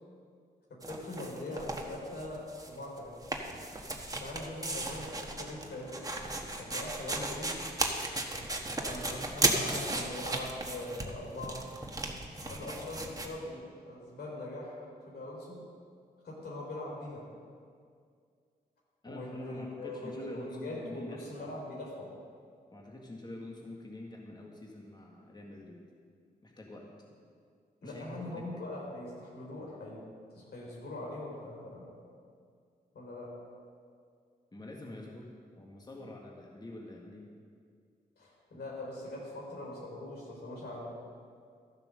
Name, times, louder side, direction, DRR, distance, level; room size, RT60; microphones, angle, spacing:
voice 1, 0.7-3.2 4.2-7.6 8.8-11.7 12.4-15.6 16.2-17.3 19.0-22.1 27.8-30.0 30.3-31.9 32.9-33.3 38.2-40.9, left 1 dB, 75° left, -3 dB, 3.7 m, -42 dB
sound 1, 0.8-2.7 3.0-13.3, right 2 dB, 20° right, 1.5 m, -35 dB
voice 2, 19.0-21.5 22.7-25.8 26.4-26.8 27.8-28.4 34.5-37.3, left 1 dB, 25° left, -1 dB, 1.8 m, -46 dB
13.0 x 7.4 x 6.5 m, 2.2 s
cardioid pair, 60°, 17 cm